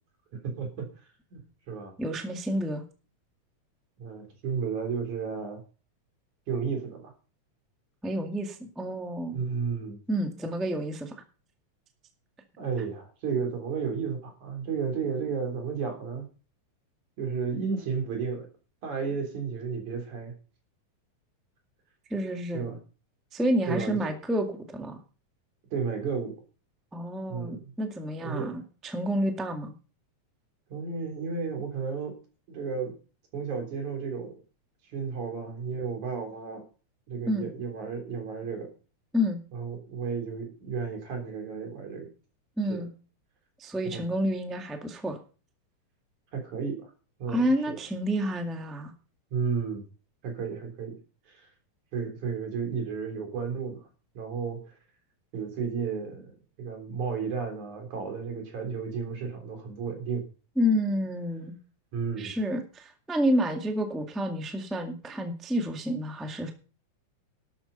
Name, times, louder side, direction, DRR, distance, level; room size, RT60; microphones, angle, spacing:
voice 1, 0.4-0.9 1.3-1.4 1.7-1.9 4.0-5.6 6.5-7.1 9.3-10.0 12.6-16.2 17.2-18.5 18.8-20.3 22.5-22.8 23.7-24.0 25.7-26.3 27.3-27.6 28.2-28.5 30.7-32.1 32.5-32.9 33.3-34.3 34.9-36.6 37.1-38.7 39.5-42.1 42.7-42.9 43.8-44.0 46.3-46.9 47.2-47.8 49.3-49.9 50.2-50.9 51.3-51.5 51.9-53.9 54.1-54.6 55.3-60.2 61.9-62.3, right 5 dB, 75° right, 3 dB, 5.0 m, -33 dB
voice 2, 2.0-2.8 8.0-9.4 10.1-11.2 22.1-22.7 23.3-25.0 26.9-29.7 37.3-37.5 39.1-39.4 42.6-42.9 43.6-45.2 47.3-48.9 60.5-61.6 62.2-66.5, equal, ahead, 4 dB, 1.2 m, -29 dB
12.5 x 10.0 x 5.4 m, 0.37 s
omnidirectional pair, 3.4 m